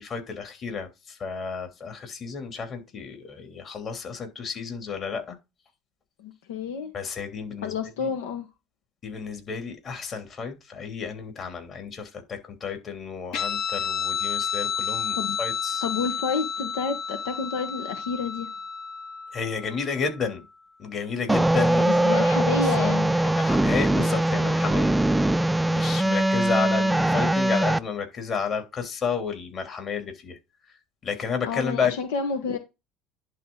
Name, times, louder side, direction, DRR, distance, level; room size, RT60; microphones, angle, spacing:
voice 1, 0.0-5.4 6.9-7.7 8.0-8.1 9.0-15.8 19.3-20.5 20.8-22.9 23.2-24.9 25.7-30.4 31.0-31.9, left 5 dB, 40° left, 3.0 m, -31 dB
voice 2, 6.2-6.9 7.6-8.5 15.1-15.4 15.8-18.5 21.7-23.1 31.4-32.6, left 5 dB, 85° left, 1.3 m, -29 dB
Guitar, 13.3-20.2, left 7 dB, 65° left, 2.5 m, -31 dB
sound 1, 21.3-27.8, right 1 dB, 5° right, 0.5 m, -22 dB
11.0 x 3.8 x 3.9 m
supercardioid pair, 90°, 0 cm